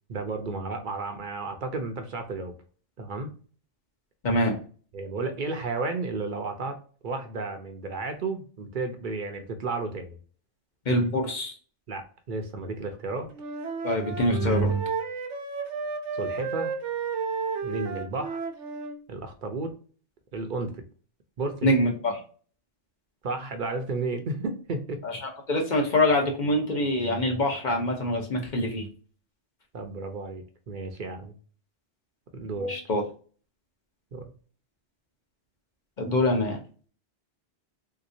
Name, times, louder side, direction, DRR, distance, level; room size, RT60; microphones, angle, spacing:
voice 1, 0.1-2.5 3.0-3.3 4.9-6.8 7.0-10.2 11.9-13.3 16.1-16.7 17.6-18.4 19.1-19.7 20.3-20.8 21.4-21.7 23.2-25.0 29.7-31.3 32.3-32.8 34.1-34.3, right 3 dB, 55° right, 6 dB, 0.7 m, -32 dB
voice 2, 4.2-4.6 10.9-11.5 13.8-14.8 21.6-22.1 25.0-25.2 25.5-28.9 32.7-33.0 36.0-36.6, left 1 dB, 45° left, 2 dB, 0.9 m, -24 dB
Wind instrument woodwind instrument, 13.3-19.0, right 5 dB, 85° right, 0.9 m, -32 dB
3.6 x 2.9 x 2.6 m, 0.41 s
omnidirectional pair, 1.2 m